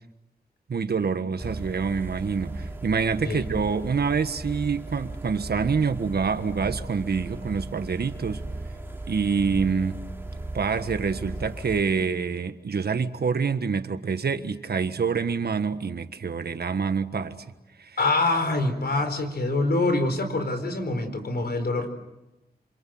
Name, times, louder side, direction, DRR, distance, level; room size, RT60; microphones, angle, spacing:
voice 1, 0.7-8.4 9.1-10.0 10.5-17.3 17.8-17.9, right 5 dB, 70° right, 1.5 m, -26 dB
sound 1, 1.4-11.8, right 2 dB, 15° right, 3.4 m, -37 dB
voice 2, 18.0-21.9, left 2 dB, 70° left, 4.5 m, -25 dB
28.0 x 26.5 x 7.8 m
wide cardioid pair, 90°, 17 cm